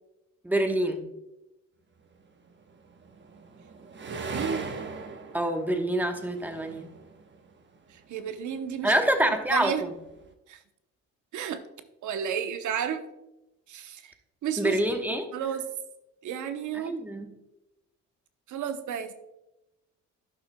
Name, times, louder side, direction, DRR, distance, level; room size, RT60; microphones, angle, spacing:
voice 1, 0.4-1.0 5.3-6.9 8.8-9.7 14.6-15.3 16.9-17.3, right 1 dB, 5° right, 5 dB, 1.1 m, -26 dB
sound 1, 2.5-8.2 8.5-10.3, right 4 dB, 35° right, 1.0 m, -39 dB
voice 2, 4.1-4.7 7.9-8.9 9.5-9.9 10.5-10.6 11.3-11.6 12.0-13.0 13.7-14.1 14.4-14.8 15.1-15.7 16.2-17.0 18.5-19.1, right 8 dB, 60° right, 9 dB, 0.9 m, -32 dB
12.5 x 5.7 x 2.2 m, 0.93 s
supercardioid pair, 75°, 33 cm